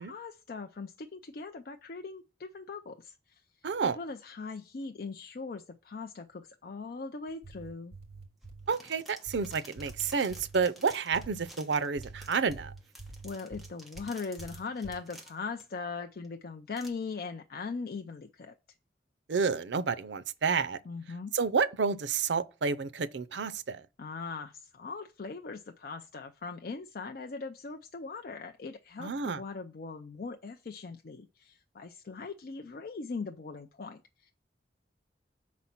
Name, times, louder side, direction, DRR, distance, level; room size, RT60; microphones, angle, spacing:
voice 1, 0.0-3.4 3.8-7.9 13.2-18.5 20.8-21.3 24.0-34.3, left 4 dB, 55° left, 0.4 m, -40 dB
voice 2, 3.6-4.0 8.7-12.7 19.3-20.8 21.3-23.8 29.0-29.4, right 5 dB, 90° right, 0.5 m, -30 dB
sound 1, 7.3-8.7 9.3-10.7 11.1-11.5 12.0-14.1 14.4-15.0, right 3 dB, 35° right, 2.9 m, -47 dB
sound 2, 8.4-15.6 16.2-16.3 16.7-16.9, right 1 dB, ahead, 1.1 m, -52 dB
6.1 x 4.2 x 5.8 m
head